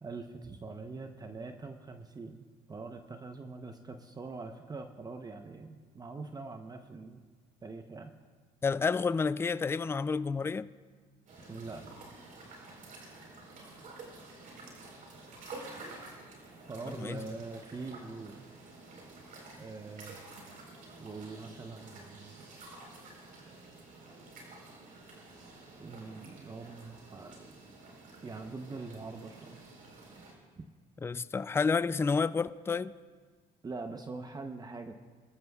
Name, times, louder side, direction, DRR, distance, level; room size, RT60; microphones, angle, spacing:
voice 1, 0.0-7.3 7.6-8.1 11.5-11.8 16.7-18.5 19.6-20.2 21.0-22.5 25.8-27.5 28.2-29.6 30.6-30.7 33.6-34.9, right 3 dB, 25° right, 6 dB, 0.8 m, -43 dB
voice 2, 8.6-10.7 16.9-17.2 31.0-32.9, left 5 dB, 15° left, 16 dB, 0.3 m, -30 dB
sound 1, 11.3-30.3, right 3 dB, 60° right, 4.2 m, -50 dB
23.5 x 13.5 x 2.4 m, 1.5 s
supercardioid pair, 80°, 16 cm